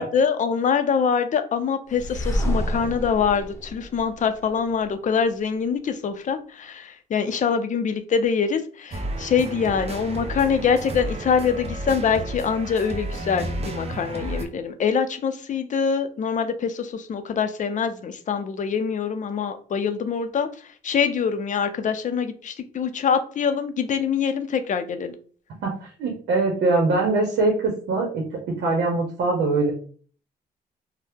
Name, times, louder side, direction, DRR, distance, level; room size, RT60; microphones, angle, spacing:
voice 1, 0.0-20.5 20.8-25.1, left 6 dB, 45° left, 9 dB, 0.5 m, -24 dB
sound 1, 1.9-4.9, equal, 15° left, 0.9 m, -28 dB
sound 2, 8.9-14.4, right 1 dB, 35° right, 0.6 m, -32 dB
voice 2, 26.0-28.2 28.6-29.7, right 3 dB, 80° right, 1 dB, 0.8 m, -22 dB
2.8 x 2.1 x 3.3 m, 0.43 s
cardioid pair, 85°, 17 cm